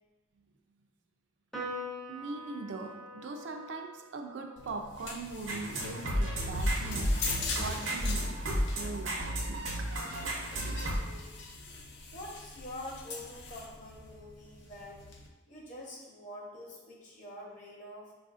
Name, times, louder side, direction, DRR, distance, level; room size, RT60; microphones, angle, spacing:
Piano, 1.5-8.2, left 1 dB, ahead, 0.4 m, -46 dB
voice 1, 2.1-7.1 7.6-9.7, right 3 dB, 65° right, 4 dB, 0.4 m, -41 dB
sound 1, 4.6-15.3, left 4 dB, 65° left, 0.4 m, -43 dB
sound 2, 5.5-11.0, equal, 90° right, 0.7 m, -32 dB
voice 2, 10.9-11.3 12.1-15.1 15.5-18.1, left 1 dB, 40° left, -3 dB, 0.8 m, -46 dB
4.7 x 2.4 x 2.4 m, 1.2 s
head